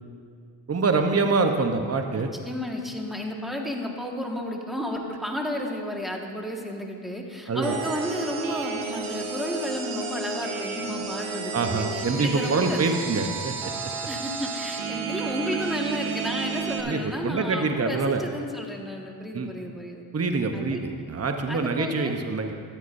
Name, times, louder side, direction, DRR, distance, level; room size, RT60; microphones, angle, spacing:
voice 1, 0.7-2.3 7.5-7.8 11.5-13.5 16.8-18.2 19.3-19.5 20.1-22.5, right 3 dB, 30° right, 5 dB, 0.9 m, -25 dB
voice 2, 2.4-12.8 14.1-20.1 20.5-20.8 21.5-22.2, left 1 dB, ahead, 0 dB, 1.6 m, -32 dB
sound 1, 7.6-16.8, right 5 dB, 80° right, 1.0 m, -32 dB
13.0 x 9.2 x 2.6 m, 2.3 s
cardioid pair, 45°, 48 cm